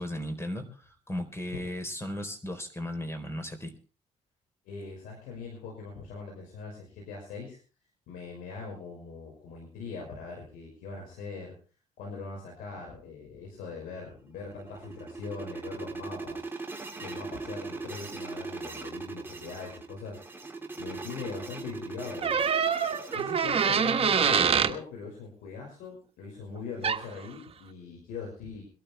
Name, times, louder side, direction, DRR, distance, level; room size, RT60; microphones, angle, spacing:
voice 1, 0.0-3.7, left 1 dB, 20° left, 7 dB, 4.1 m, -36 dB
voice 2, 4.7-7.6 8.1-11.6 12.0-16.5 17.0-20.2 20.8-22.4 23.1-28.7, left 4 dB, 90° left, -1 dB, 5.7 m, -41 dB
sound 1, 14.3-23.7, right 3 dB, 15° right, 2.6 m, -40 dB
sound 2, 22.2-24.8 26.8-27.0, right 6 dB, 45° right, 1.3 m, -25 dB
23.0 x 12.5 x 3.5 m, 0.38 s
cardioid pair, 75°, 14 cm